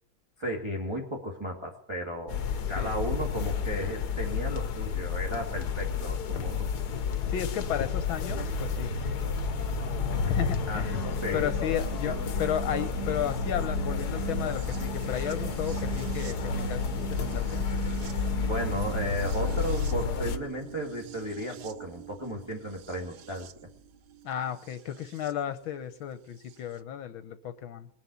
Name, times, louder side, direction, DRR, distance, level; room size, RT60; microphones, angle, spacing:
voice 1, 0.4-6.7 10.7-11.4 12.0-12.2 18.5-23.5, right 1 dB, 15° right, -1 dB, 2.1 m, -34 dB
sound 1, 2.3-20.4, left 7 dB, 55° left, 1.4 m, -31 dB
voice 2, 7.3-9.0 10.3-11.0 11.3-17.6 24.2-27.9, left 9 dB, 70° left, 10 dB, 1.6 m, -34 dB
sound 2, 8.3-25.3 26.5-26.6, right 8 dB, 70° right, 1.5 m, -39 dB
21.0 x 7.6 x 8.3 m, 0.65 s
omnidirectional pair, 2.4 m